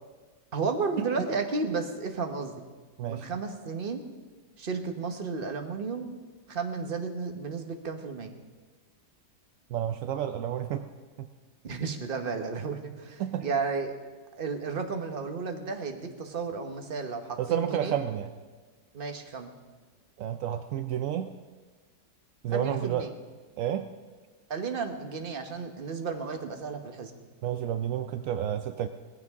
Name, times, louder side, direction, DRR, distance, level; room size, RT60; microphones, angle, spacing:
voice 1, 0.5-2.6 3.1-4.0 4.6-6.1 6.5-8.3 11.6-13.9 14.4-18.0 18.9-19.5 22.5-23.1 24.5-27.1, right 4 dB, 35° right, 5 dB, 1.1 m, -33 dB
voice 2, 9.7-10.9 11.2-11.3 13.2-13.5 17.4-18.3 20.2-21.3 22.4-23.1 23.6-23.9 27.4-28.9, right 10 dB, 75° right, 8 dB, 0.7 m, -30 dB
19.0 x 15.0 x 3.6 m, 1.4 s
omnidirectional pair, 1.9 m